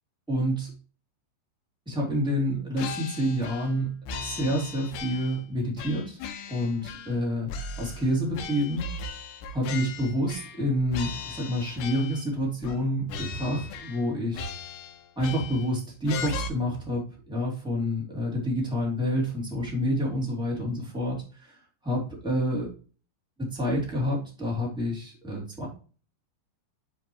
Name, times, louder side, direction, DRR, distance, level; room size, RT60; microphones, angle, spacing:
voice 1, 0.3-0.7 1.8-6.2 6.5-8.9 9.5-14.5 15.1-21.6 21.8-22.7 23.4-25.7, equal, ahead, -4 dB, 1.5 m, -28 dB
sound 1, 2.8-3.8 4.1-5.4 5.8-7.2 7.5-10.6 10.9-12.3 12.6-12.8 13.1-14.1 14.3-15.7 16.1-16.5, left 4 dB, 80° left, 3.0 m, -37 dB
9.5 x 4.6 x 3.0 m, 0.38 s
omnidirectional pair, 5.4 m